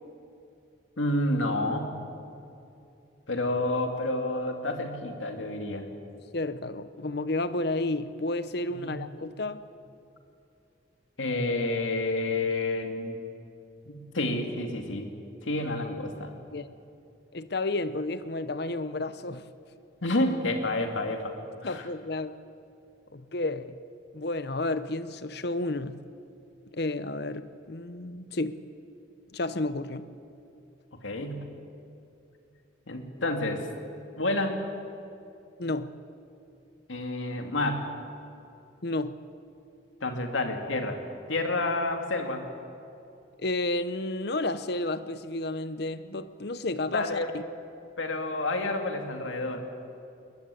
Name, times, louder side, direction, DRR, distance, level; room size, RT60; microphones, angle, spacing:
voice 1, 1.0-2.0 3.3-5.9 8.7-9.0 11.2-13.2 13.9-15.1 15.4-16.3 20.0-21.3 21.6-21.9 31.0-31.4 32.9-33.7 34.2-34.6 36.9-37.9 40.0-41.0 41.3-42.5 46.9-47.3 48.0-49.6, left 2 dB, 90° left, 5 dB, 2.4 m, -29 dB
voice 2, 6.3-9.6 16.5-16.7 17.3-19.4 21.6-22.3 23.1-23.8 24.1-26.0 26.7-28.6 29.3-30.1 35.6-35.9 38.8-39.2 43.4-47.4, left 2 dB, 55° left, 13 dB, 0.8 m, -31 dB
21.0 x 20.5 x 8.3 m, 2.7 s
head